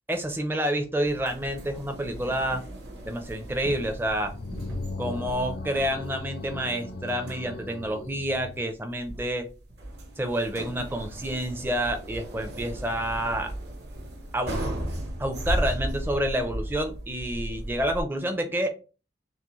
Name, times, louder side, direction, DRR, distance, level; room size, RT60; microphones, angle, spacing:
voice 1, 0.1-2.6 3.0-4.3 5.0-9.5 10.2-13.5 14.3-14.6 15.2-18.7, right 1 dB, 10° right, 5 dB, 0.6 m, -28 dB
sound 1, 1.0-18.0, right 1 dB, 60° right, 1.0 m, -36 dB
sound 2, 4.1-8.6, left 2 dB, 55° left, 0.5 m, -38 dB
6.0 x 2.1 x 3.1 m, 0.34 s
head